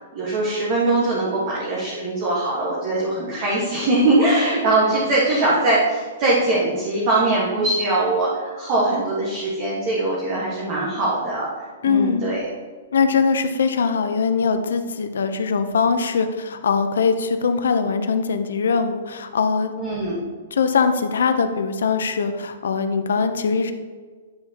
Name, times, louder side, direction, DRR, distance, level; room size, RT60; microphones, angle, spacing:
voice 1, 0.0-12.5 19.8-20.2, right 2 dB, 30° right, -6 dB, 1.5 m, -21 dB
voice 2, 11.8-12.2 12.9-19.7 20.5-23.7, left 5 dB, 85° left, 8 dB, 0.7 m, -21 dB
9.5 x 5.7 x 2.9 m, 1.5 s
hypercardioid pair, 170°, 0 cm